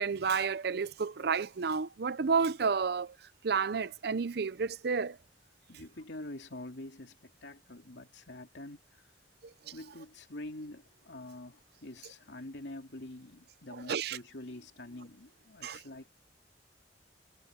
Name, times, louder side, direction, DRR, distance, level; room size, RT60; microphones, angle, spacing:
voice 1, 0.0-3.2 3.4-5.2 9.4-9.5 13.9-14.2 15.6-15.8, right 5 dB, 60° right, 0.6 m, -31 dB
voice 2, 5.7-9.1 9.7-16.1, left 1 dB, 85° left, 2.8 m, -46 dB
head